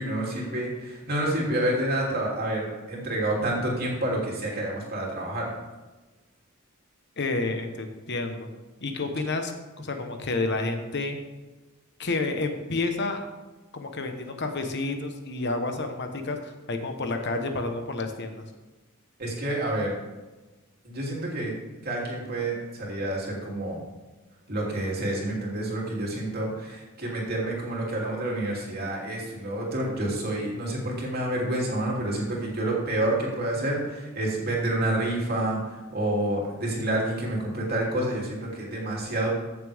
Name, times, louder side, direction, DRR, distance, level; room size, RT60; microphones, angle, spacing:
voice 1, 0.0-5.5 19.2-20.0 20.8-21.5 21.8-23.8 24.5-39.3, right 1 dB, 50° right, -3 dB, 3.0 m, -28 dB
voice 2, 7.2-8.5 8.8-9.5 9.8-11.2 12.0-13.2 13.7-18.5, left 3 dB, 55° left, 6 dB, 1.1 m, -30 dB
15.0 x 7.2 x 3.5 m, 1.2 s
head